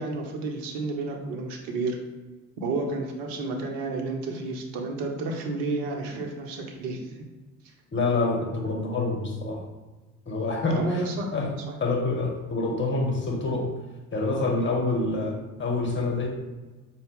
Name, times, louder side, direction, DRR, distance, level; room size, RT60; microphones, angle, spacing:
voice 1, 0.0-2.0 2.6-7.2 10.7-11.7, right 3 dB, 60° right, 2 dB, 0.9 m, -31 dB
voice 2, 7.9-9.6 10.3-11.5 11.8-13.7 14.1-16.3, left 3 dB, 25° left, 0 dB, 1.2 m, -27 dB
5.5 x 2.4 x 3.4 m, 1.2 s
figure-of-eight pair, 60°, 42 cm